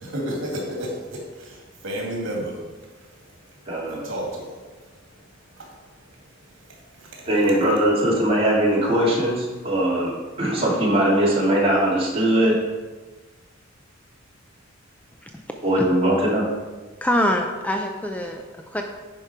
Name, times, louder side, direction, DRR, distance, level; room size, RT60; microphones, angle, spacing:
voice 1, 0.0-1.6 1.8-2.6 3.9-4.6 5.6-5.7 7.0-7.1, equal, 65° right, -2 dB, 2.5 m, -31 dB
voice 2, 3.7-4.1 7.2-10.1 10.4-12.6 15.6-16.5, right 1 dB, 30° right, -6 dB, 2.7 m, -20 dB
voice 3, 17.0-18.8, equal, 5° left, 3 dB, 0.5 m, -24 dB
10.5 x 5.2 x 4.5 m, 1.3 s
head